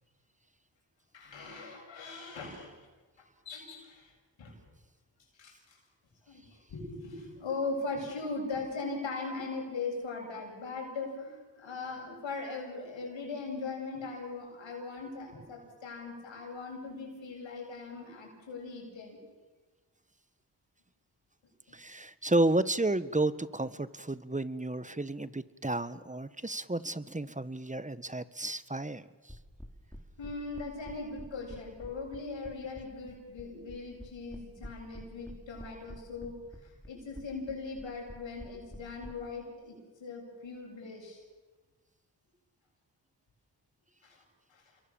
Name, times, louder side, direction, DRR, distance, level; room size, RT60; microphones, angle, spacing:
voice 1, 1.1-2.7 3.2-4.1 4.4-4.5 5.4-5.8 6.3-19.2 30.2-41.2 44.0-44.2 44.5-44.8, left 3 dB, 90° left, 1 dB, 7.9 m, -40 dB
voice 2, 21.7-29.3, right 2 dB, 15° right, 14 dB, 1.5 m, -32 dB
sound 1, 29.3-39.1, equal, 5° left, 5.6 m, -47 dB
28.5 x 23.0 x 7.3 m, 1.3 s
cardioid pair, 40°, 44 cm